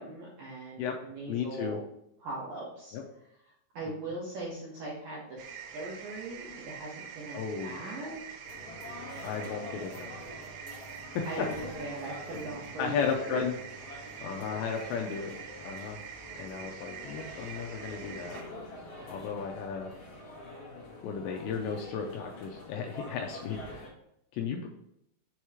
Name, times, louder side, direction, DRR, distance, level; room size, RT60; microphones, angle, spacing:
voice 1, 0.0-1.8 2.2-3.0 3.7-8.2 11.2-13.4 13.9-14.1, right 2 dB, 70° right, -6 dB, 2.2 m, -40 dB
voice 2, 1.3-1.8 2.9-3.0 7.3-7.8 9.2-10.1 11.1-11.5 12.8-13.5 14.2-15.3 15.6-16.0 16.4-18.4 19.1-19.9 21.0-23.9 24.3-24.7, left 6 dB, 80° left, 1 dB, 2.6 m, -34 dB
sound 1, 5.4-18.4, right 7 dB, 85° right, 3.3 m, -45 dB
sound 2, 8.4-23.9, left 1 dB, 65° left, 1.2 m, -46 dB
7.1 x 3.0 x 4.8 m, 0.77 s
omnidirectional pair, 5.5 m